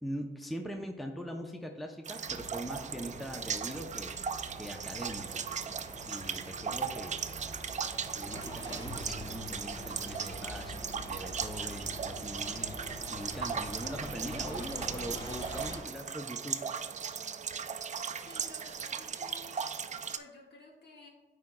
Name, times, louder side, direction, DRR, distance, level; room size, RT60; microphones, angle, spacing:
voice 1, 0.0-4.3 4.6-5.4 6.1-7.1 8.2-10.7 11.1-12.7 13.1-16.6, equal, ahead, 3 dB, 0.6 m, -41 dB
sound 1, 2.0-20.2, right 6 dB, 40° right, 0.4 m, -38 dB
sound 2, 2.2-15.8, equal, 25° left, 1.7 m, -45 dB
voice 2, 18.2-19.5 20.2-21.1, left 3 dB, 60° left, -1 dB, 1.6 m, -53 dB
12.5 x 4.8 x 2.3 m, 1.2 s
cardioid pair, 100°, 19 cm